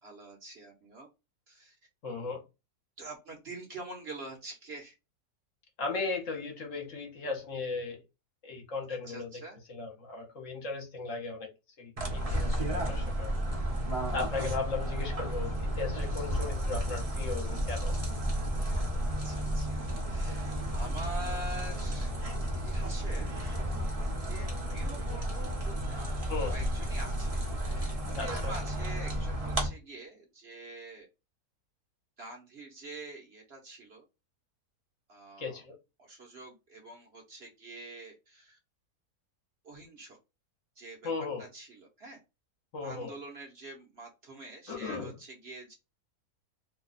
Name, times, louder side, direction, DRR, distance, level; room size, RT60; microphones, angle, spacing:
voice 1, 0.0-1.1 1.5-1.8 3.0-4.9 8.9-9.6 18.6-19.8 20.1-22.1 22.6-23.6 24.2-26.2 26.5-31.1 32.2-34.0 35.1-35.6 36.0-38.6 39.6-40.2 40.8-41.1 41.4-42.2 42.8-45.8, right 2 dB, 50° right, 0.9 m, -46 dB
voice 2, 2.0-2.4 5.8-8.0 8.4-9.3 9.7-11.5 11.8-13.3 14.1-17.9 26.3-26.5 28.2-28.5 35.4-35.8 41.0-41.4 42.7-43.1 44.7-45.1, left 4 dB, 60° left, 1.2 m, -36 dB
sound 1, 12.0-29.7, equal, 30° right, 0.8 m, -32 dB
2.8 x 2.2 x 3.9 m
omnidirectional pair, 1.6 m